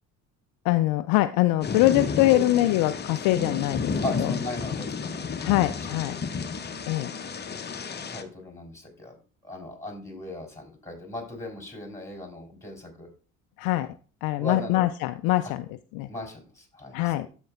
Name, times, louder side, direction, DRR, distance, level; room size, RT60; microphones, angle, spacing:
voice 1, 0.6-3.9 4.2-4.3 5.4-6.2 6.9-7.1 13.6-13.9 14.2-16.1 16.9-17.3, left 16 dB, 55° left, 11 dB, 0.5 m, -23 dB
Thunder / Rain, 1.6-8.2, left 5 dB, 25° left, 0.9 m, -32 dB
voice 2, 4.0-5.4 7.9-9.2 9.4-13.1 14.4-14.8 16.1-17.1, left 1 dB, 5° left, 1 dB, 3.7 m, -37 dB
14.0 x 5.3 x 2.4 m, 0.37 s
hypercardioid pair, 55°, 41 cm